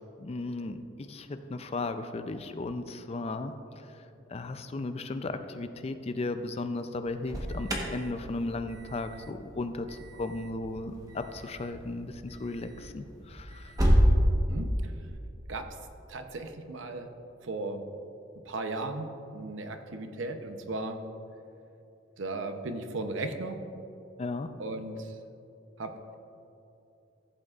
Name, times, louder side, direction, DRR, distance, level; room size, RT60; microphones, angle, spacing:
voice 1, 0.2-3.5 4.3-13.7 24.2-24.5, left 2 dB, 35° left, 9 dB, 0.4 m, -35 dB
Alarm, 7.0-14.1, equal, 20° right, 1.1 m, -31 dB
voice 2, 16.1-17.1 17.4-17.8 18.5-21.0 22.2-23.6 24.6-25.1 25.8-26.2, right 2 dB, 85° right, 7 dB, 0.7 m, -36 dB
14.5 x 7.8 x 2.4 m, 2.8 s
head